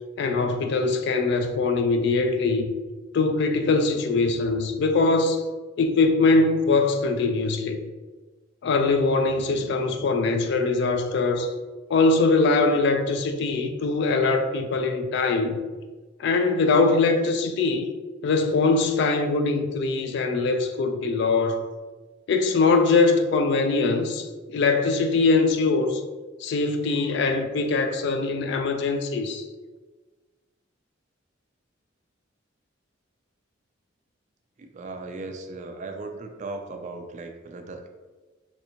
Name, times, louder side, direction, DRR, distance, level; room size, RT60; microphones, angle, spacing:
voice 1, 0.2-2.7 3.1-5.4 5.8-7.8 8.6-11.5 11.9-15.6 16.2-17.9 18.2-21.7 22.3-26.0 26.4-29.4, left 3 dB, 60° left, 0.3 m, -22 dB
voice 2, 34.6-37.9, right 3 dB, 40° right, 0.3 m, -37 dB
3.2 x 2.6 x 2.8 m
head